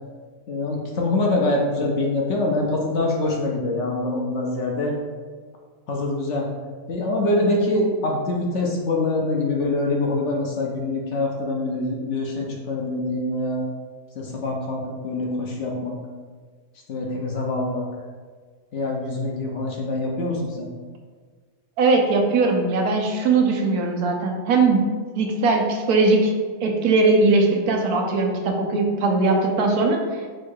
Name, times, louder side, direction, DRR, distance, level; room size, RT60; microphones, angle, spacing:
voice 1, 0.5-4.9 5.9-6.5 6.9-13.6 14.2-16.0 16.9-17.9 18.7-20.7, left 2 dB, 60° left, -1 dB, 0.9 m, -24 dB
voice 2, 21.8-24.9 25.2-26.3 26.6-30.0, right 3 dB, 85° right, 2 dB, 1.2 m, -20 dB
4.6 x 2.3 x 4.4 m, 1.5 s
omnidirectional pair, 1.5 m